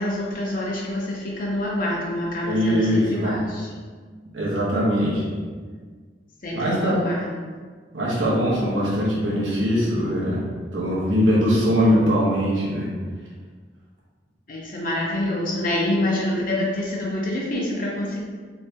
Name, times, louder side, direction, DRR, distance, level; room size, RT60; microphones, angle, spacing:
voice 1, 0.0-3.7 6.4-7.3 14.5-18.2, left 1 dB, 50° left, -4 dB, 0.8 m, -26 dB
voice 2, 2.4-3.4 4.3-5.2 6.5-7.0 7.9-10.5 10.7-12.9, equal, 90° right, -6 dB, 1.1 m, -21 dB
3.4 x 3.3 x 2.7 m, 1.5 s
head